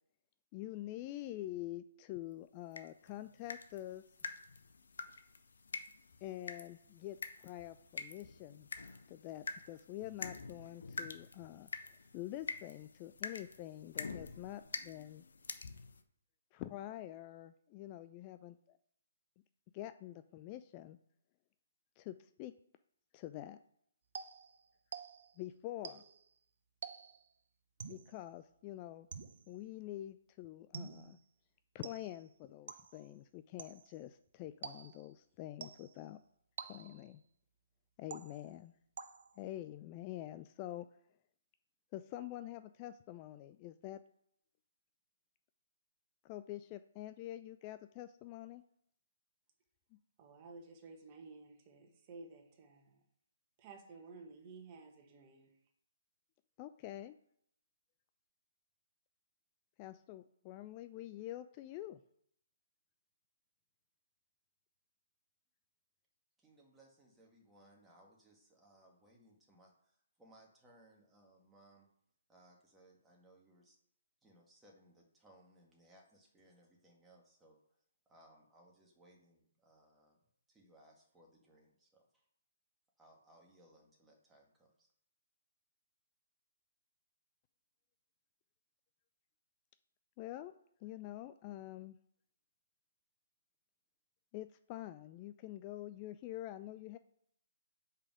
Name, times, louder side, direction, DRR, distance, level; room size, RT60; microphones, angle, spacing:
voice 1, 0.5-4.0 6.2-8.7 9.1-11.7 12.1-15.2 16.5-18.8 19.7-21.0 22.0-22.5 23.1-23.6 25.4-26.0 27.9-29.1 29.5-31.2 31.7-36.2 36.6-37.2 38.0-38.7 39.4-40.9 41.9-44.0 46.2-48.6 56.6-57.2 59.8-62.0 90.2-90.5 90.8-92.0 94.3-97.0, left 14 dB, 30° left, 11 dB, 0.3 m, -46 dB
sound 1, 2.7-16.0, left 4 dB, 75° left, 0.8 m, -47 dB
sound 2, 24.1-25.4 25.8-26.3 26.8-27.3 27.8-28.2 29.1-29.6 30.7-31.2 31.8-32.3 32.7-33.1 33.6-34.0 34.6-35.1 35.6-36.0 36.6-37.1 38.1-38.6 39.0-39.5, right 6 dB, 55° right, 0.7 m, -49 dB
voice 2, 50.2-53.0 53.6-55.5, right 3 dB, 30° right, 3 dB, 1.6 m, -54 dB
voice 3, 66.4-71.9 72.3-73.8 74.2-77.6 78.1-80.2 80.5-82.2 83.0-84.9, right 1 dB, 10° right, -2 dB, 1.9 m, -65 dB
5.6 x 4.9 x 6.2 m, 0.71 s
hypercardioid pair, 145°, 0 cm